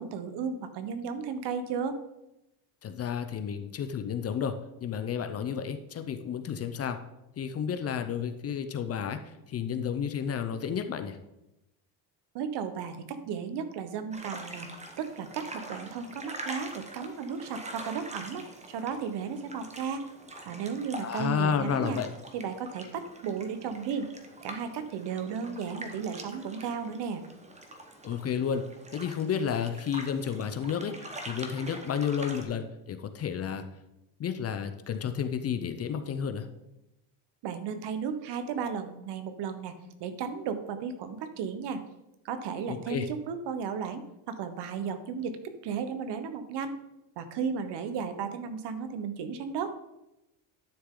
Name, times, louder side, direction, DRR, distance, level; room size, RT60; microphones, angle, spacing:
voice 1, 0.0-2.0 12.3-14.7 15.0-20.0 20.5-22.0 22.3-24.1 24.4-27.2 37.4-39.7 40.0-41.8 42.2-46.8 47.2-49.7, right 6 dB, 55° right, 10 dB, 1.2 m, -34 dB
voice 2, 2.8-4.5 4.8-7.0 7.4-11.2 21.0-22.1 28.0-28.6 28.9-30.9 31.3-33.6 34.2-36.5 42.7-43.1, left 7 dB, 30° left, 9 dB, 0.6 m, -31 dB
sound 1, 14.1-32.4, right 1 dB, 15° right, 1.2 m, -44 dB
11.5 x 6.5 x 3.8 m, 0.92 s
cardioid pair, 125°, 48 cm